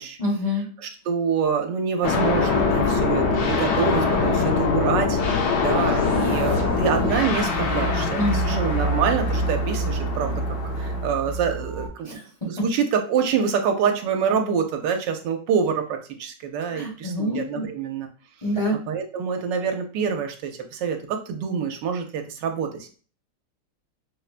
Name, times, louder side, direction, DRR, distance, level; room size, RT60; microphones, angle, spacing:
voice 1, 0.2-0.7 8.1-8.6 12.0-12.5 16.7-17.7 18.4-18.8, left 1 dB, 30° left, -4 dB, 0.6 m, -26 dB
voice 2, 0.8-10.3 10.8-12.2 12.4-18.1 18.9-22.9, right 6 dB, 90° right, 5 dB, 1.3 m, -26 dB
sound 1, 2.0-11.1, left 4 dB, 75° left, 1.2 m, -24 dB
sound 2, 5.6-11.9, right 2 dB, 40° right, 0.7 m, -28 dB
5.4 x 2.1 x 2.4 m, 0.39 s
omnidirectional pair, 2.0 m